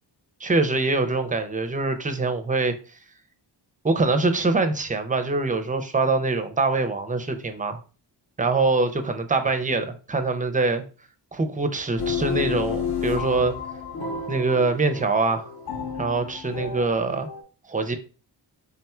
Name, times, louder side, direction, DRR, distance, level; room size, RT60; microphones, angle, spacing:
voice 1, 0.4-3.0 3.8-7.8 8.4-10.8 11.3-13.6 14.3-15.5 16.0-17.3 17.7-18.0, right 3 dB, 20° right, 8 dB, 0.4 m, -24 dB
sound 1, 12.0-17.4, left 6 dB, 55° left, 0.8 m, -31 dB
3.7 x 2.3 x 4.2 m, 0.36 s
wide cardioid pair, 150°, 45 cm